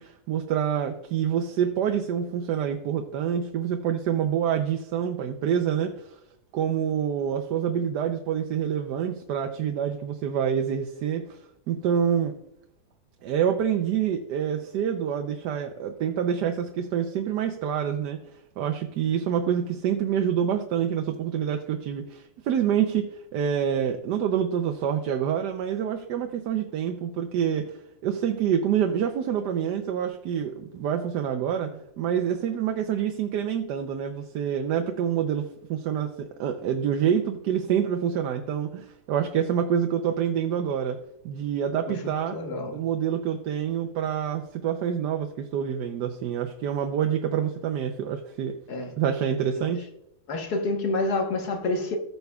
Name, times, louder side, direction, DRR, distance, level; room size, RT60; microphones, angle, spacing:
voice 1, 0.0-6.2 6.5-11.4 11.7-12.3 13.2-18.2 18.6-41.0 41.2-42.4 42.7-48.6 49.0-49.9, right 8 dB, 90° right, 5 dB, 1.3 m, -27 dB
voice 2, 42.3-42.8 48.7-49.0 49.6-49.7 50.3-52.0, left 2 dB, 70° left, 3 dB, 1.8 m, -28 dB
14.5 x 6.7 x 2.3 m, 0.82 s
omnidirectional pair, 1.7 m